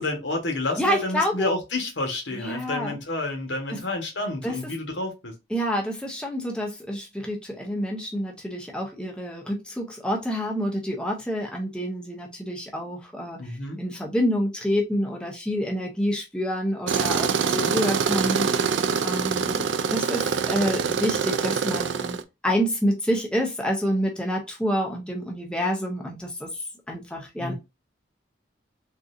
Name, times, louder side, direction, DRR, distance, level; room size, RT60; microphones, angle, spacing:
voice 1, 0.0-5.3 13.4-13.8 17.6-17.8 27.4-27.5, left 2 dB, 85° left, 1.3 m, -30 dB
voice 2, 0.8-1.5 2.3-3.0 3.7-3.8 4.4-4.6 5.5-18.7 19.0-27.5, equal, 5° left, 0.6 m, -28 dB
Tools, 16.9-22.2, right 6 dB, 80° right, 0.4 m, -25 dB
3.8 x 2.6 x 2.5 m
head